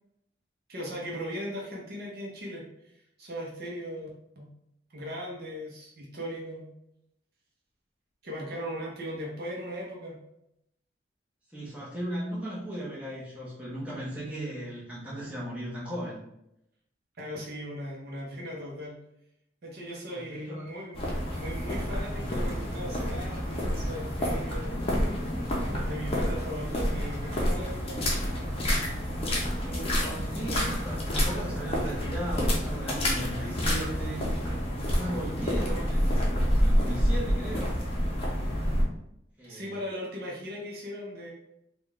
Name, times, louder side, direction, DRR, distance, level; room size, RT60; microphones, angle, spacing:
voice 1, 0.7-2.9 3.2-4.1 4.4-4.5 4.9-6.7 8.2-10.2 17.2-19.0 19.6-21.0 21.3-24.8 25.7-28.3 39.4-41.3, equal, 55° right, -2 dB, 0.8 m, -38 dB
voice 2, 11.5-16.2 20.1-20.7 29.6-34.3 34.8-37.8 39.4-39.7, right 1 dB, 5° right, -7 dB, 1.1 m, -37 dB
sound 1, 20.9-38.8, equal, 30° left, 0.8 m, -28 dB
3.7 x 2.4 x 3.2 m, 0.81 s
head